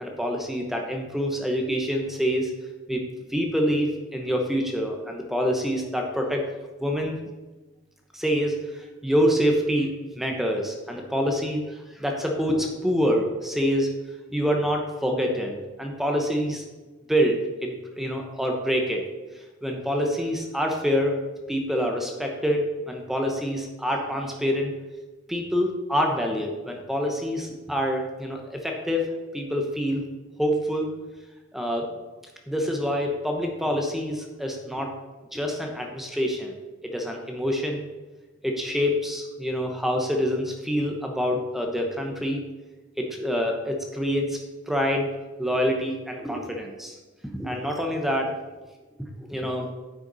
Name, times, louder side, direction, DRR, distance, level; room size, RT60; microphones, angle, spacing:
voice 1, 0.0-2.5 2.9-3.0 3.3-6.5 6.8-7.2 8.1-13.9 14.3-16.6 17.1-19.0 19.6-21.2 21.5-24.7 25.3-30.0 30.4-31.0 31.5-31.9 32.5-34.9 35.3-36.5 36.8-37.9 38.4-42.4 43.0-44.4 44.7-45.1 45.4-47.0 47.3-48.4 49.0-49.7, equal, ahead, 1 dB, 0.8 m, -26 dB
9.4 x 5.8 x 4.0 m, 1.2 s
head